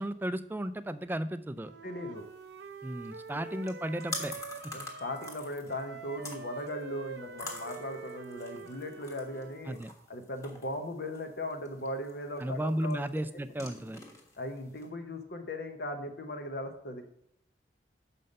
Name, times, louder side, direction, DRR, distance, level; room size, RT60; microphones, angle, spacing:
voice 1, 0.0-1.7 2.8-4.3 4.6-4.7 9.7-9.9 12.4-14.0, right 1 dB, 10° right, 12 dB, 0.3 m, -34 dB
Wind instrument woodwind instrument, 1.6-5.4 5.7-9.7, right 4 dB, 80° right, 0.6 m, -45 dB
voice 2, 1.8-2.2 4.7-9.8 10.1-13.1 14.4-17.0, left 1 dB, 65° left, 5 dB, 0.9 m, -38 dB
sound 1, 2.2-14.9, left 2 dB, 15° left, 1.4 m, -47 dB
6.7 x 5.6 x 5.3 m, 0.79 s
head